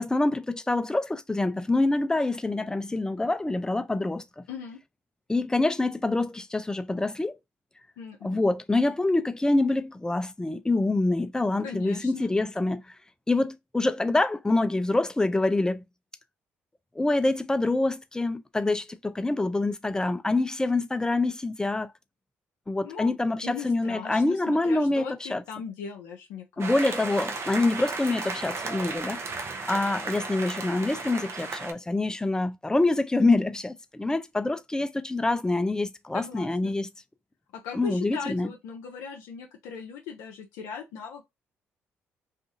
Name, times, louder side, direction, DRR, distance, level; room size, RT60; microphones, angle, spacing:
voice 1, 0.0-4.4 5.3-7.3 8.2-12.9 13.3-15.8 17.0-21.9 22.7-25.4 26.6-29.2 29.7-36.9 37.7-38.5, left 2 dB, 10° left, 0.4 m, -26 dB
voice 2, 4.5-4.8 8.0-8.4 11.6-12.3 22.8-23.2 23.4-26.7 36.1-36.7 37.5-41.2, left 6 dB, 85° left, 0.5 m, -39 dB
sound 1, 26.6-31.7, right 3 dB, 50° right, 0.6 m, -34 dB
2.6 x 2.4 x 2.6 m
supercardioid pair, 55°, 6 cm